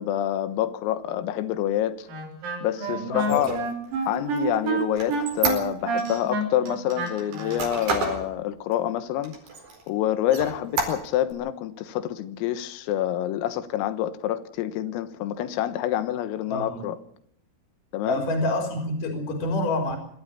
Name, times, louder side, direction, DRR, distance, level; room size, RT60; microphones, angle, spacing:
voice 1, 0.0-2.1 2.6-3.5 4.1-9.4 9.9-17.0 17.9-18.2, left 12 dB, 90° left, 3.9 m, -27 dB
Wind instrument woodwind instrument, 2.1-7.7, right 3 dB, 80° right, 6.5 m, -28 dB
voice 2, 2.9-3.6 16.5-16.8 18.0-20.0, left 1 dB, 45° left, 4.7 m, -27 dB
Squeak, 3.2-6.2 6.7-8.2 8.7-8.8 9.2-9.9 10.3-11.3, right 4 dB, 50° right, 6.2 m, -30 dB
25.0 x 13.0 x 8.6 m
omnidirectional pair, 5.9 m